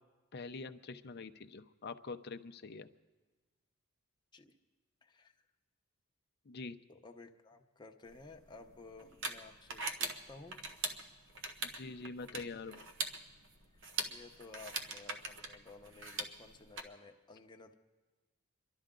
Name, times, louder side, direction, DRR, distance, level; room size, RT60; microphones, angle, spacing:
voice 1, 0.3-2.9 6.5-6.7 11.7-12.8, left 4 dB, 50° left, 9 dB, 0.6 m, -45 dB
voice 2, 5.0-5.4 6.9-10.6 12.7-12.9 14.1-17.7, left 3 dB, 20° left, 3 dB, 0.9 m, -54 dB
sound 1, 8.1-16.8, right 3 dB, 60° right, 1.0 m, -42 dB
28.0 x 12.0 x 3.8 m, 1.3 s
head